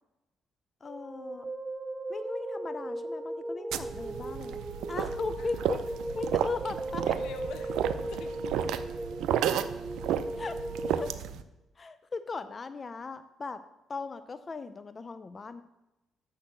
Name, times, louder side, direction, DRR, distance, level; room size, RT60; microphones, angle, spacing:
voice 1, 0.8-1.5 2.1-4.6 4.9-5.9 6.2-7.0 10.4-10.6 11.0-11.1 11.8-13.6 13.9-15.6, left 4 dB, 35° left, 11 dB, 0.4 m, -38 dB
sound 1, 0.9-11.1, right 1 dB, 20° right, 0.5 m, -37 dB
sound 2, 3.7-11.4, right 9 dB, 85° right, 0.5 m, -32 dB
voice 2, 7.0-8.4, left 7 dB, 80° left, 9 dB, 0.9 m, -47 dB
6.5 x 6.4 x 7.3 m, 0.98 s
cardioid pair, 90°, 0 cm